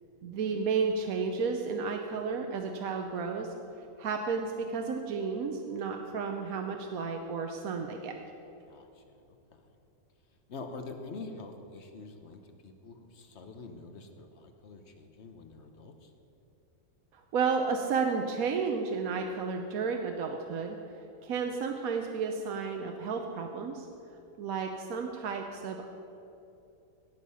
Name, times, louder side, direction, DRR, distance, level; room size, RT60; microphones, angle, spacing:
voice 1, 0.2-3.5 3.8-8.1 17.1-20.8 21.2-23.9 24.4-25.9, right 5 dB, 70° right, 3 dB, 1.2 m, -32 dB
voice 2, 10.5-15.9, left 3 dB, 50° left, 6 dB, 1.1 m, -45 dB
17.5 x 6.6 x 5.5 m, 2.8 s
omnidirectional pair, 1.6 m